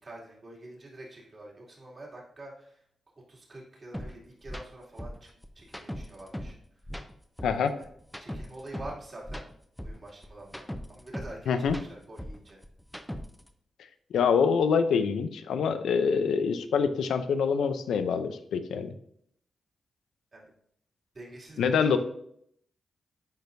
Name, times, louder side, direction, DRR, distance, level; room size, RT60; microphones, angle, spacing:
voice 1, 0.0-2.8 3.3-5.3 5.5-6.6 7.7-7.9 8.2-9.5 9.8-12.6 20.3-20.5 21.1-22.0, right 2 dB, 45° right, -3 dB, 2.5 m, -46 dB
sound 1, 3.9-4.1 4.4-4.6 5.0-6.6 6.8-9.0 9.2-11.4 11.6-13.5, equal, 5° left, 0.7 m, -39 dB
voice 2, 7.4-7.7 11.5-11.8 14.1-18.9 21.6-22.0, left 6 dB, 85° left, 10 dB, 0.5 m, -25 dB
10.5 x 4.4 x 2.6 m, 0.70 s
cardioid pair, 55°, 0 cm